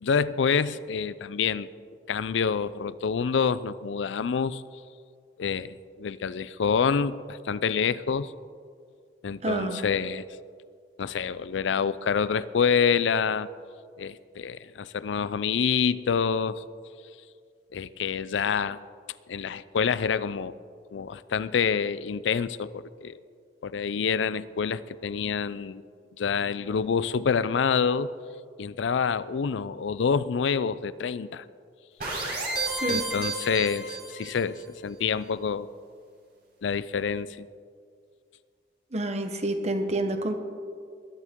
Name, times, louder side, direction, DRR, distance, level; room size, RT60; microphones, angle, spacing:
voice 1, 0.0-1.7 2.1-4.6 5.4-8.3 9.2-10.2 11.0-13.5 14.0-16.6 17.7-18.8 19.3-20.6 20.9-23.2 23.6-25.8 26.2-28.1 28.6-31.4 32.9-35.7 36.6-37.5, left 6 dB, 90° left, 17 dB, 0.4 m, -27 dB
voice 2, 9.4-9.8 32.8-33.1 38.9-40.4, right 1 dB, 35° right, 7 dB, 1.0 m, -28 dB
sound 1, 32.0-34.4, right 2 dB, 55° right, 3.3 m, -31 dB
21.0 x 11.0 x 3.7 m, 2.2 s
head